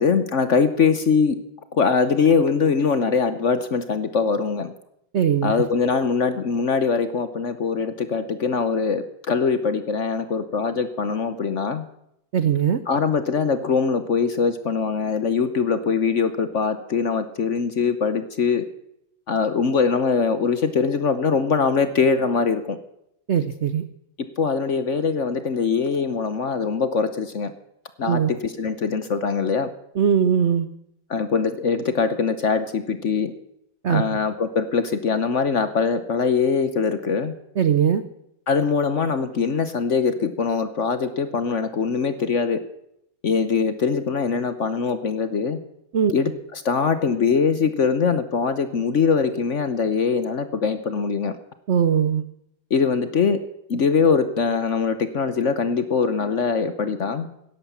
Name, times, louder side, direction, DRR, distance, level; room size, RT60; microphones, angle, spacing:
voice 1, 0.0-1.4 1.7-4.7 5.4-11.9 12.9-18.6 19.3-22.8 24.4-27.5 28.0-29.7 31.1-33.3 33.9-37.3 38.5-42.6 43.2-45.6 46.1-51.4 52.7-53.4 53.7-57.3, left 5 dB, 50° left, 11 dB, 0.9 m, -22 dB
voice 2, 5.1-5.5 12.3-12.8 23.3-23.8 28.0-28.3 30.0-30.7 33.8-34.0 37.6-38.0 45.9-46.1 51.7-52.2, right 8 dB, 75° right, 12 dB, 0.6 m, -20 dB
16.5 x 11.0 x 7.2 m, 0.78 s
omnidirectional pair, 2.1 m